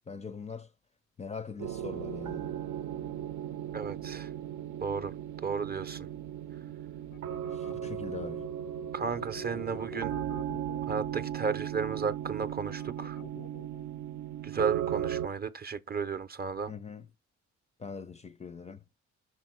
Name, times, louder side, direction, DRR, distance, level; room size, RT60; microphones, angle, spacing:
voice 1, 0.1-0.7 1.2-2.5 7.5-8.4 16.7-17.1 17.8-18.8, left 5 dB, 20° left, 0.4 m, -42 dB
sound 1, 1.6-15.3, right 11 dB, 70° right, 0.6 m, -37 dB
voice 2, 3.7-4.3 4.8-5.1 5.4-6.1 8.9-10.2 10.9-13.2 14.4-16.7, right 5 dB, 30° right, 0.6 m, -33 dB
sound 2, 7.1-13.9, left 14 dB, 80° left, 0.5 m, -49 dB
5.8 x 4.4 x 4.4 m
cardioid pair, 90°, 30 cm